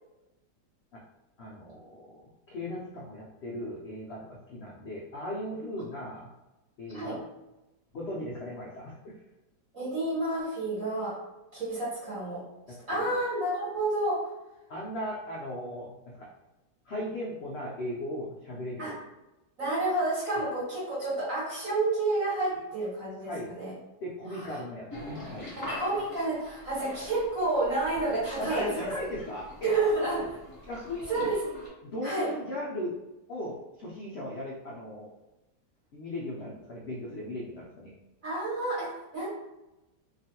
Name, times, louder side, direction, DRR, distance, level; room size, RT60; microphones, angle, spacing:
voice 1, 1.4-6.3 6.8-7.2 7.9-9.2 12.7-13.1 14.7-16.3 16.8-19.0 23.2-23.5 24.0-25.5 28.4-29.7 30.7-31.3 31.8-33.0 33.3-35.1 35.9-37.9, left 1 dB, 85° left, -4 dB, 0.5 m, -37 dB
voice 2, 9.7-11.2 11.5-12.4 12.9-14.2 18.8-18.9 19.6-23.7 24.3-24.4 25.6-28.9 29.6-30.4 31.1-31.4 32.0-32.3 38.2-39.3, right 2 dB, 55° right, -9 dB, 1.4 m, -30 dB
sound 1, 24.9-31.7, left 1 dB, 20° left, 0.6 m, -44 dB
2.9 x 2.4 x 2.8 m, 0.99 s
omnidirectional pair, 1.8 m